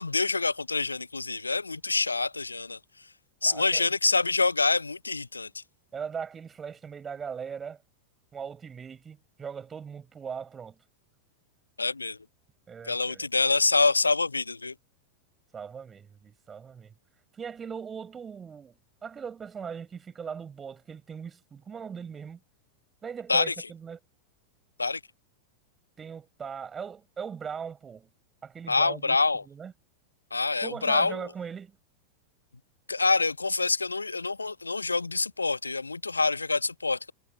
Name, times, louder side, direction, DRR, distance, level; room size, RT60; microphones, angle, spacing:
voice 1, 0.0-3.1 3.4-5.6 11.8-12.2 12.9-14.7 23.3-23.5 24.8-25.0 28.7-29.4 30.3-31.2 32.9-37.1, left 3 dB, 80° left, 0.7 m, -26 dB
voice 2, 3.4-3.9 5.9-7.8 8.3-10.8 12.7-13.3 15.5-16.9 17.3-18.7 19.0-22.4 23.0-24.0 26.0-28.1 28.4-29.2 29.5-29.7 30.6-31.8, right 6 dB, 20° right, 7.0 m, -39 dB
figure-of-eight pair, 90°, 0 cm